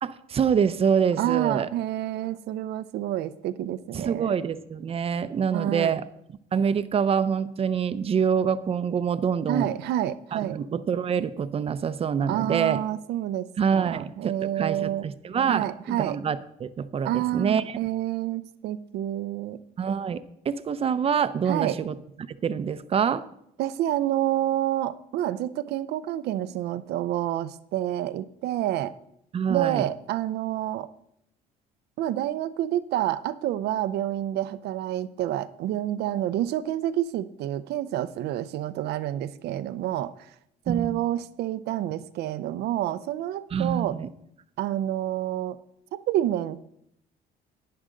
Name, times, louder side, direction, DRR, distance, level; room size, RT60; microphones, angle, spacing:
voice 1, 0.0-1.7 3.9-6.1 6.5-9.7 10.3-12.8 13.6-17.6 19.8-21.9 22.4-23.2 29.3-29.8 40.7-41.0 43.5-44.1, right 7 dB, 35° right, 13 dB, 0.6 m, -26 dB
voice 2, 1.2-4.4 5.5-6.0 9.5-10.6 12.3-15.1 15.5-16.2 17.0-19.6 21.5-21.8 23.6-28.9 29.5-30.9 32.0-40.1 40.7-44.0 44.6-45.6 45.9-46.6, right 13 dB, 75° right, 14 dB, 0.6 m, -28 dB
11.0 x 9.5 x 3.8 m, 0.76 s
cardioid pair, 110°, 17 cm